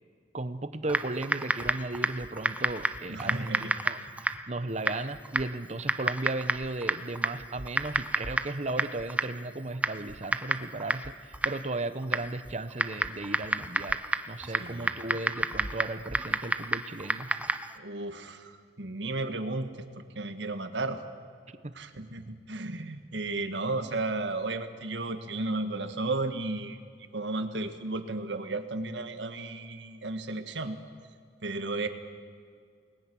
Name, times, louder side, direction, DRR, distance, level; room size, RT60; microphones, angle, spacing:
voice 1, 0.3-14.0 14.2-17.3 21.6-21.8, right 2 dB, 40° right, 12 dB, 0.9 m, -35 dB
Typing, 0.9-17.8, right 1 dB, 10° right, 0.5 m, -32 dB
voice 2, 3.1-3.7 14.6-14.9 17.8-19.9 20.1-21.0 21.7-30.8 31.4-31.9, right 2 dB, 75° right, 8 dB, 1.6 m, -34 dB
28.5 x 20.0 x 6.2 m, 2.2 s
head